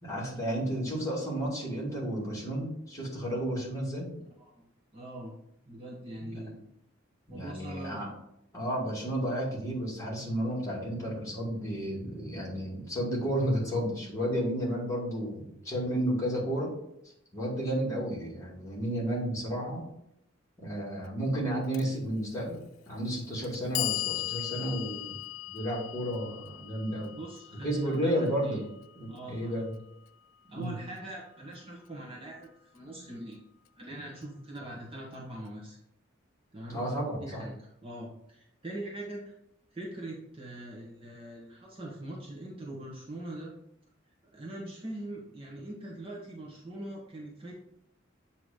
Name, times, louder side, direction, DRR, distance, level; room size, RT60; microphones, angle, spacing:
voice 1, 0.0-4.1 6.3-6.4 7.3-8.1 8.5-16.7 17.3-19.8 20.6-25.1 25.5-27.2 27.6-28.6 29.0-29.7 30.5-30.7 32.9-33.1 36.7-37.4, equal, 15° left, -6 dB, 2.3 m, -32 dB
voice 2, 4.9-5.3 5.7-6.6 7.3-8.0 27.1-28.6 29.1-29.6 30.5-33.4 33.8-35.8 36.5-36.8 37.2-39.3 39.7-43.5 44.3-47.5, right 1 dB, 25° right, -3 dB, 1.1 m, -42 dB
Clock, 21.7-21.9 22.8-22.9 23.4-29.5, left 18 dB, 80° left, 0.3 m, -38 dB
7.9 x 2.9 x 5.0 m, 0.79 s
head